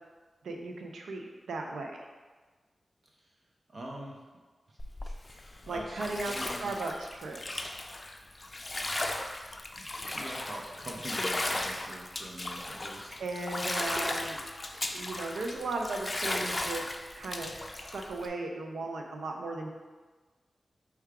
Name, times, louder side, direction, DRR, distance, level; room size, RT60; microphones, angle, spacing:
voice 1, 0.4-1.9 5.7-7.7 13.2-14.4 14.9-16.8 17.2-19.7, right 2 dB, 90° right, 2 dB, 0.5 m, -36 dB
voice 2, 3.7-4.2 4.7-6.8 9.8-9.9 10.1-13.1, right 1 dB, 45° right, -1 dB, 0.6 m, -44 dB
Bathtub (filling or washing), 4.8-18.3, left 2 dB, 35° left, 0.4 m, -36 dB
4.5 x 2.3 x 4.6 m, 1.3 s
cardioid pair, 45°, 0 cm